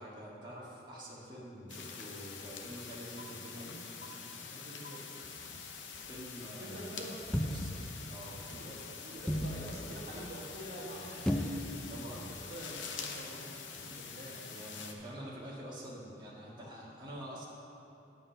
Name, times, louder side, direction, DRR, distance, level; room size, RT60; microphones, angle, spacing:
voice 1, 0.0-3.8 6.0-8.6 9.4-10.2 11.9-12.3 14.5-17.5, equal, 25° right, -6 dB, 1.7 m, -47 dB
sound 1, 1.7-14.9, left 5 dB, 75° left, 0.8 m, -46 dB
voice 2, 4.5-5.0 6.6-7.1 8.5-14.4, right 1 dB, 50° right, -6 dB, 1.2 m, -47 dB
sound 2, 7.2-7.9 9.3-9.7 11.3-11.9 12.2-12.3, equal, 5° left, 0.4 m, -33 dB
9.8 x 5.7 x 6.5 m, 3.0 s
head